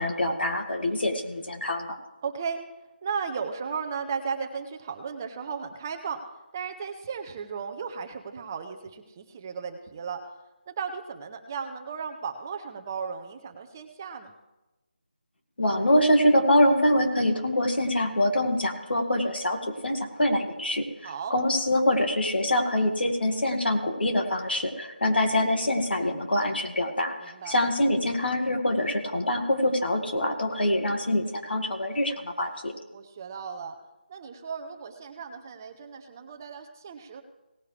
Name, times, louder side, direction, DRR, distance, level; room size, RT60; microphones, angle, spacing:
voice 1, 0.0-2.0 15.6-19.6 19.8-20.8 21.3-32.7, left 1 dB, 75° left, 4 dB, 2.0 m, -25 dB
voice 2, 2.2-2.6 3.0-6.2 6.5-10.2 10.7-14.3 21.0-21.4 27.2-27.6 32.9-33.7 34.1-37.2, right 6 dB, 20° right, 6 dB, 0.6 m, -35 dB
18.0 x 9.2 x 3.3 m, 1.0 s
figure-of-eight pair, 170°, 6 cm